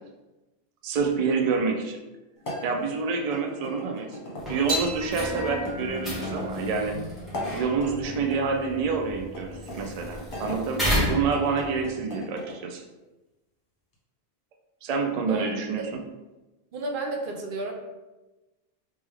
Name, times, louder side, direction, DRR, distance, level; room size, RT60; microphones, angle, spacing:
voice 1, 0.8-2.0 2.6-4.2 4.5-7.0 7.5-12.8 14.8-16.0, right 5 dB, 85° right, 3 dB, 0.3 m, -27 dB
sound 1, 2.4-4.4 5.2-6.5 7.2-8.4 9.3-10.6 11.2-12.6, left 1 dB, 50° left, 1.1 m, -38 dB
sound 2, 4.4-11.9, equal, ahead, 1.1 m, -33 dB
sound 3, 4.7-11.2, left 1 dB, 35° right, 1.4 m, -37 dB
voice 2, 15.3-15.9 16.7-17.7, right 2 dB, 55° right, 2 dB, 0.7 m, -32 dB
3.3 x 3.0 x 3.4 m, 1.1 s
omnidirectional pair, 1.2 m